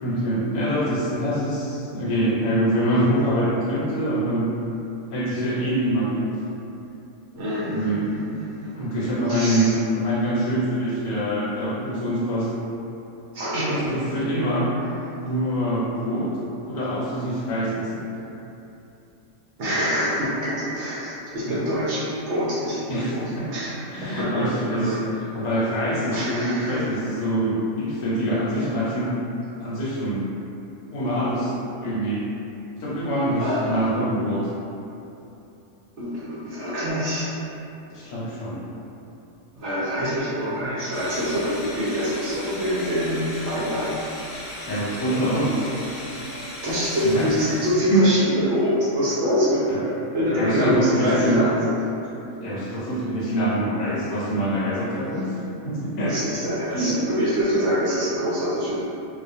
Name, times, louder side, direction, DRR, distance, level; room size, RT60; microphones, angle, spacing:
voice 1, 0.0-4.5 5.1-6.4 7.7-8.0 8.7-12.5 13.5-14.7 15.1-16.3 16.7-18.1 21.6-21.7 22.9-23.5 23.9-25.0 25.3-29.1 29.6-30.3 30.9-31.5 31.8-32.2 32.8-34.5 37.9-38.7 44.7-45.8 47.0-47.3 47.9-48.1 49.7-49.8 50.3-51.4 52.4-55.4 55.6-56.2 56.7-57.0, right 1 dB, 75° left, -7 dB, 1.0 m, -24 dB
voice 2, 7.3-8.7 9.3-9.8 13.3-13.9 14.8-14.9 19.6-23.2 23.5-24.4 24.7-24.9 26.1-26.9 33.4-33.8 36.0-37.3 39.6-44.0 46.6-52.0 56.1-58.8, equal, 65° right, -8 dB, 0.7 m, -25 dB
sound 1, 40.9-47.9, left 1 dB, 55° left, 0.5 m, -37 dB
2.4 x 2.2 x 2.6 m, 2.8 s
omnidirectional pair, 1.5 m